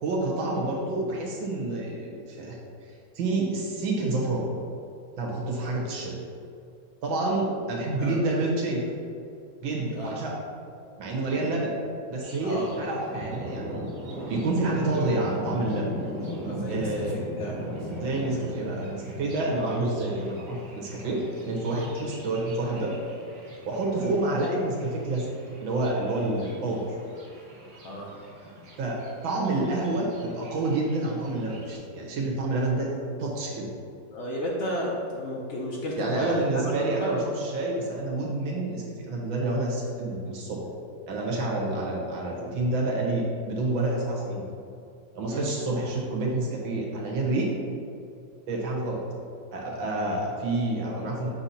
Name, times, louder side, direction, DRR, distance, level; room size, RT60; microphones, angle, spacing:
voice 1, 0.0-2.6 3.2-4.5 5.2-6.1 7.0-8.8 9.6-10.4 11.0-11.7 12.1-13.8 14.3-15.9 16.7-17.2 18.0-23.0 23.7-25.3 25.6-26.9 28.8-32.9 33.2-33.7 36.0-40.6 41.1-44.5 45.1-47.5 48.5-49.0 49.5-51.3, right 2 dB, 80° right, -3 dB, 1.9 m, -28 dB
Thunder, 12.2-31.8, right 1 dB, 50° right, 1.5 m, -39 dB
voice 2, 12.4-12.9 16.4-17.6 24.0-24.1 27.8-28.1 34.1-36.6 37.0-37.2 45.3-45.5, left 1 dB, 65° left, -3 dB, 0.7 m, -33 dB
6.8 x 2.7 x 5.7 m, 2.5 s
omnidirectional pair, 2.1 m